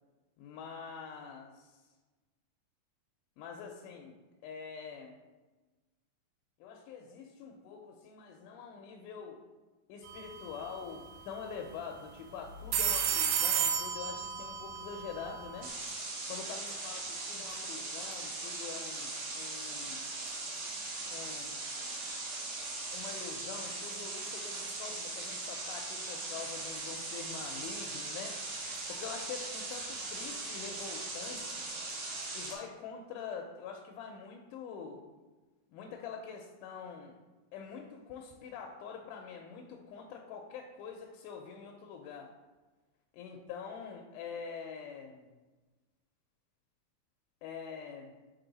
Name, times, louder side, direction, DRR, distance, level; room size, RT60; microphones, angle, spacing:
voice 1, 0.4-1.8 3.4-4.2 4.4-5.2 6.6-9.4 9.9-15.7 16.3-20.1 21.1-21.6 22.9-28.4 28.9-31.6 32.3-35.1 35.7-37.2 37.5-42.3 43.2-45.3 47.4-48.2, left 6 dB, 80° left, 2 dB, 2.0 m, -45 dB
sound 1, 10.1-10.3 10.6-10.7 12.5-15.7, right 7 dB, 75° right, 2.0 m, -32 dB
sound 2, 15.6-32.5, right 3 dB, 60° right, 2.0 m, -39 dB
6.1 x 4.1 x 3.9 m, 1.2 s
omnidirectional pair, 3.9 m